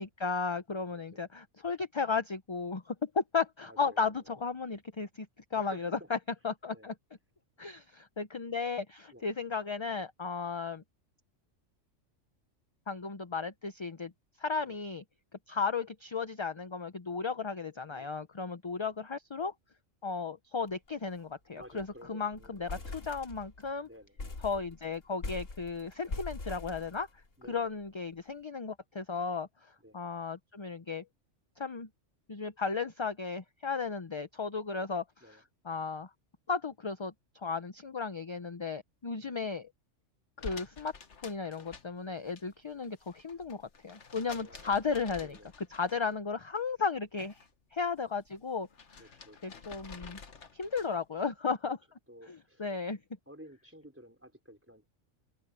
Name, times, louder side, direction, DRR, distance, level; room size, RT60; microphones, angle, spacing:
voice 1, 0.0-5.3 5.5-6.2 6.4-6.9 7.6-10.8 12.9-14.1 14.4-15.0 15.5-19.5 20.0-23.9 24.4-27.1 27.5-29.5 29.9-31.0 31.6-31.9 32.3-35.4 35.6-36.1 36.5-37.1 37.4-39.7 40.4-40.9 41.2-45.4 45.7-47.4 47.7-48.7 49.0-49.1 49.4-50.2 50.5-51.8 52.3-53.0, left 5 dB, 30° left, 0.6 m, -35 dB
voice 2, 0.9-1.3 3.6-4.2 5.5-6.1 6.7-6.9 9.1-9.2 14.7-14.8 17.9-18.2 21.5-23.0 23.8-24.2 27.4-27.7 29.8-30.0 35.2-35.4 39.2-39.4 44.2-44.8 45.2-45.5 49.0-49.6 50.3-50.6 52.1-52.7 53.3-54.9, equal, 10° right, 4.7 m, -54 dB
sound 1, 20.7-20.9 21.2-21.3 21.6-22.0 22.3-23.7 24.2-27.5, left 3 dB, 85° left, 2.9 m, -42 dB
sound 2, 40.4-42.4 42.7-46.2 46.5-47.5 47.8-51.1, left 5 dB, 65° left, 1.7 m, -50 dB
omnidirectional pair, 1.3 m